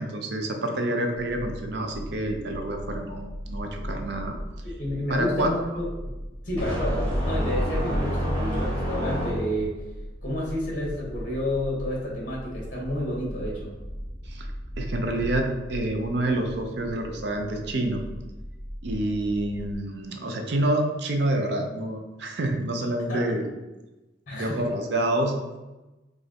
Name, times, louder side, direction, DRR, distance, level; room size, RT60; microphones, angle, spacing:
voice 1, 0.0-4.4 5.1-5.5 14.3-14.5 14.8-18.0 18.8-23.5 24.3-25.3, right 1 dB, 60° right, 3 dB, 0.5 m, -28 dB
sound 1, 1.1-19.7, equal, 20° right, 0.8 m, -38 dB
voice 2, 4.8-6.2 6.4-9.8 10.2-13.8 23.1-23.3 24.3-24.6, left 1 dB, 45° left, -3 dB, 1.1 m, -30 dB
sound 2, 6.6-9.8, equal, 10° left, 1.5 m, -27 dB
5.0 x 2.5 x 2.8 m, 1.1 s
head